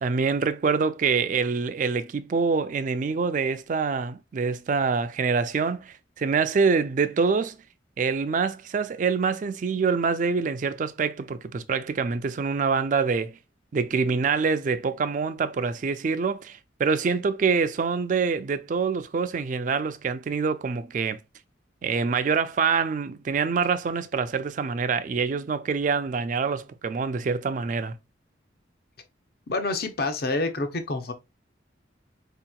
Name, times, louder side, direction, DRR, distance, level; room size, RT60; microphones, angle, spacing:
voice 1, 0.0-7.6 8.0-13.4 13.7-21.2 21.8-28.0, right 5 dB, 40° right, 0.3 m, -25 dB
voice 2, 29.5-31.1, left 2 dB, 50° left, 0.6 m, -27 dB
4.3 x 2.8 x 2.3 m
head